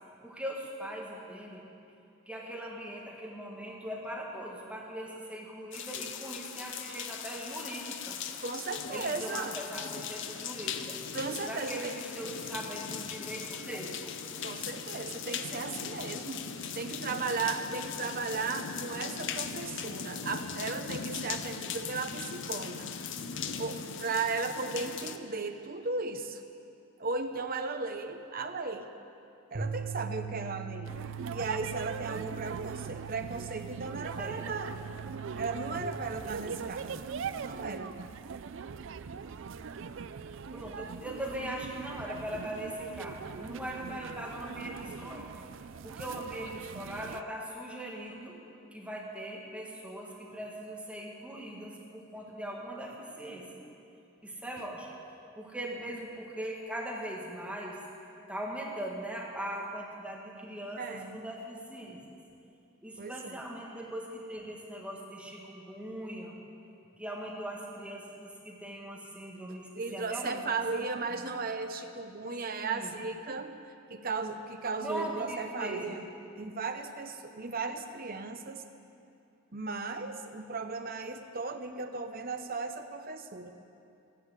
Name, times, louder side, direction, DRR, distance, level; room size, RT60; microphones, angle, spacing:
voice 1, 0.2-1.6 2.3-8.2 8.9-11.0 11.5-14.0 34.2-34.4 40.5-45.3 45.8-48.4 48.7-53.5 54.2-54.9 55.4-57.8 58.3-62.0 62.8-66.4 67.0-71.2 72.6-72.9 74.8-76.0, right 1 dB, 5° right, -3 dB, 1.7 m, -40 dB
sound 1, 5.7-25.2, left 6 dB, 55° left, 0.7 m, -39 dB
voice 2, 8.4-9.6 11.1-11.9 14.4-16.4 16.7-23.1 23.5-26.4 27.0-28.9 29.5-31.0 31.3-34.8 35.4-37.0 37.4-37.9 60.8-61.2 63.0-63.4 69.8-73.6 73.9-76.0 76.3-78.6 79.5-83.5, right 4 dB, 40° right, 7 dB, 0.8 m, -36 dB
sound 2, 29.5-35.8, right 6 dB, 75° right, 1.6 m, -41 dB
sound 3, 30.9-47.2, right 6 dB, 55° right, 0.4 m, -41 dB
14.0 x 11.0 x 8.2 m, 2.7 s
head